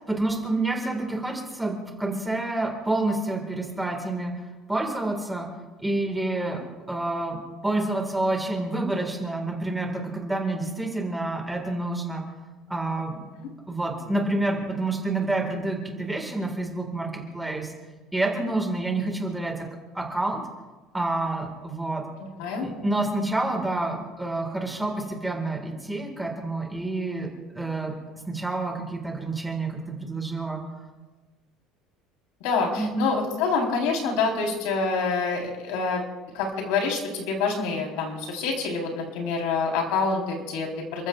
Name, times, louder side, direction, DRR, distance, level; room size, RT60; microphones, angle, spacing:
voice 1, 0.1-4.4 4.7-5.5 5.8-6.6 6.9-12.2 12.7-13.1 13.7-17.7 18.1-19.7 19.9-20.4 20.9-22.1 22.6-27.9 28.3-30.6 32.8-33.1, right 2 dB, 5° right, 2 dB, 1.8 m, -28 dB
voice 2, 22.2-22.7 32.4-36.0 36.3-41.1, left 4 dB, 75° left, 1 dB, 3.8 m, -26 dB
29.0 x 14.5 x 2.4 m, 1.2 s
cardioid pair, 175°, 0 cm